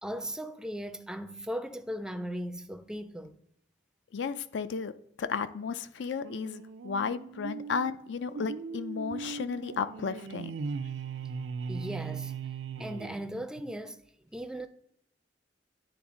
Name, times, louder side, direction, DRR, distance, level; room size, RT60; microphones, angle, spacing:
voice 1, 0.0-3.4 11.7-12.3 12.8-14.0 14.3-14.7, equal, 5° right, 0.4 m, -37 dB
voice 2, 4.1-4.9 5.2-10.5, left 5 dB, 75° left, 0.4 m, -33 dB
sound 1, 6.2-13.7, right 5 dB, 85° right, 0.4 m, -39 dB
9.6 x 3.5 x 3.7 m
head